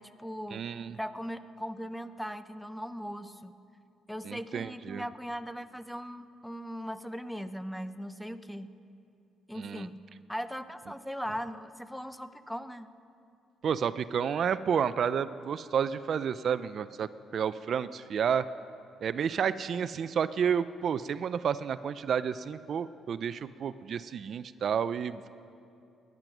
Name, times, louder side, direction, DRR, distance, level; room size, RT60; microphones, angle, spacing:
voice 1, 0.0-0.7 0.9-3.6 4.1-8.7 9.5-10.0 10.3-12.9, equal, ahead, 12 dB, 0.6 m, -39 dB
voice 2, 0.5-1.0 4.3-5.0 9.5-9.9 13.6-18.4 19.0-25.3, right 7 dB, 60° right, 14 dB, 0.4 m, -30 dB
19.5 x 10.5 x 6.1 m, 2.6 s
cardioid pair, 90°, 0 cm